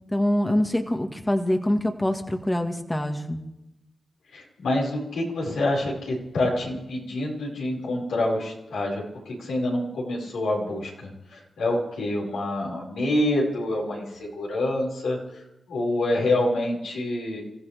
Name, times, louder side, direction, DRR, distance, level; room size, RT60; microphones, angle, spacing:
voice 1, 0.1-3.4, left 1 dB, 15° left, 4 dB, 1.7 m, -24 dB
voice 2, 4.3-10.9 11.3-15.2 15.7-17.4, left 1 dB, 85° left, -4 dB, 5.3 m, -26 dB
27.5 x 15.0 x 3.5 m, 0.89 s
cardioid pair, 50°, 0 cm